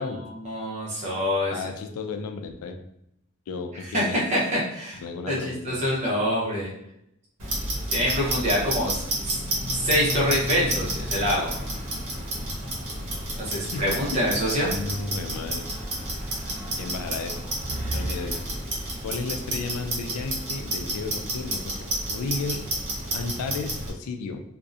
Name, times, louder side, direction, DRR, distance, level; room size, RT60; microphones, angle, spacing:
voice 1, 0.0-1.5 3.9-6.7 7.9-11.5 13.4-14.7, equal, 30° right, -5 dB, 0.7 m, -26 dB
voice 2, 1.5-2.8 3.5-4.2 5.0-5.8 13.7-14.4 14.7-15.7 16.8-17.4 17.9-18.4 19.0-22.6 23.1-24.4, left 4 dB, 85° left, 7 dB, 0.3 m, -33 dB
Clock, 7.4-23.9, right 1 dB, 80° right, 0.8 m, -30 dB
2.6 x 2.0 x 2.4 m, 0.78 s
head